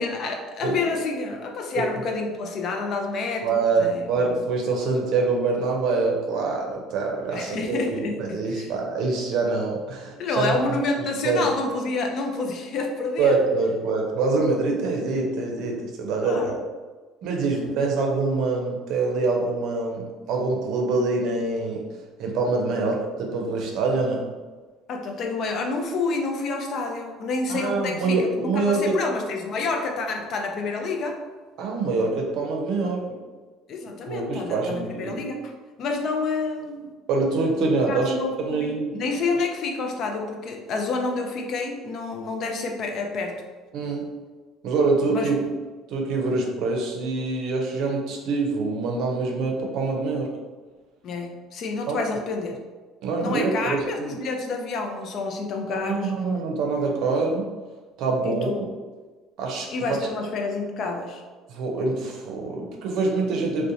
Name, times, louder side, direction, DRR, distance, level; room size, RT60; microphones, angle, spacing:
voice 1, 0.0-4.1 7.3-8.7 10.2-13.4 16.1-16.6 17.4-17.6 24.9-31.2 33.7-35.5 35.8-36.9 37.9-38.3 38.6-43.4 43.8-43.9 45.1-45.5 51.0-52.6 53.2-56.1 58.2-58.8 59.7-61.2, left 3 dB, 55° left, 3 dB, 0.4 m, -29 dB
voice 2, 3.4-10.6 11.2-11.5 13.2-16.6 17.2-21.8 22.2-24.2 27.5-28.9 31.6-33.0 34.1-35.2 37.1-39.1 43.7-44.0 44.6-45.4 45.9-50.3 51.9-52.0 53.0-54.1 55.8-57.5 58.0-58.5 59.4-60.1 61.5-63.7, right 3 dB, 65° right, 0 dB, 0.5 m, -25 dB
2.7 x 2.1 x 2.6 m, 1.3 s
hypercardioid pair, 75°, 0 cm